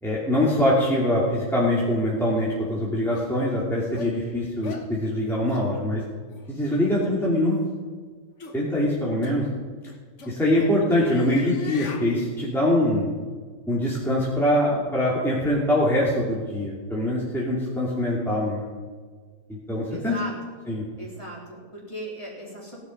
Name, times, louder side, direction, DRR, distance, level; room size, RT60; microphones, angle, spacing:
voice 1, 0.0-6.0 6.5-7.6 8.5-9.4 10.3-13.1 13.7-18.7 19.5-20.2 20.7-20.8, left 1 dB, ahead, -6 dB, 2.7 m, -23 dB
sound 1, 2.4-2.5 3.1-3.3 3.9-4.1 4.6-4.9 5.5-5.7 6.3-6.4 7.4-7.7 8.4-8.6 9.2-9.3 9.8-12.1, left 4 dB, 50° left, 1.5 m, -39 dB
voice 2, 19.9-20.6 21.0-22.8, right 1 dB, 15° left, -4 dB, 3.8 m, -37 dB
18.0 x 11.0 x 5.4 m, 1.5 s
omnidirectional pair, 1.7 m